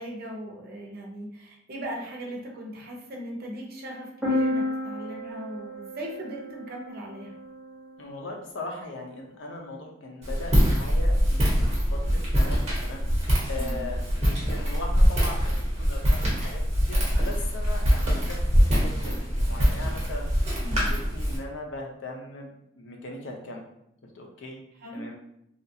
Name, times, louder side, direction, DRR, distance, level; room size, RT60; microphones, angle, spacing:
voice 1, 0.0-7.3 13.5-13.9 20.6-20.9 24.8-25.1, equal, 55° right, 0 dB, 0.7 m, -38 dB
sound 1, 4.2-8.0, left 1 dB, ahead, 0.9 m, -31 dB
voice 2, 8.0-16.6 16.9-20.3 20.7-23.6 24.1-24.6 24.9-25.2, left 2 dB, 90° left, 0 dB, 0.6 m, -39 dB
Walk footsteps, 10.2-21.4, equal, 35° right, 1.1 m, -24 dB
2.8 x 2.3 x 2.7 m, 0.78 s
head